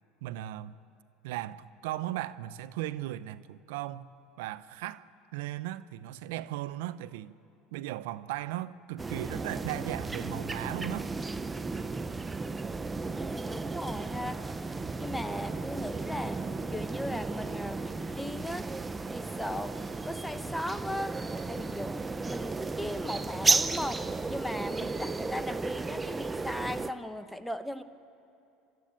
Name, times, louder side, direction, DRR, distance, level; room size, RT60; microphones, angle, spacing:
voice 1, 0.2-0.8 1.2-5.1 5.3-7.4 7.7-11.1, right 14 dB, 80° right, 0.6 m, -37 dB
sound 1, 9.0-26.9, right 3 dB, 20° right, 0.7 m, -34 dB
voice 2, 13.1-14.4 15.0-16.4 16.7-18.7 19.1-21.2 21.5-22.0 22.2-27.8, left 1 dB, 5° left, 1.1 m, -37 dB
27.5 x 13.0 x 9.1 m
hypercardioid pair, 90°, 0 cm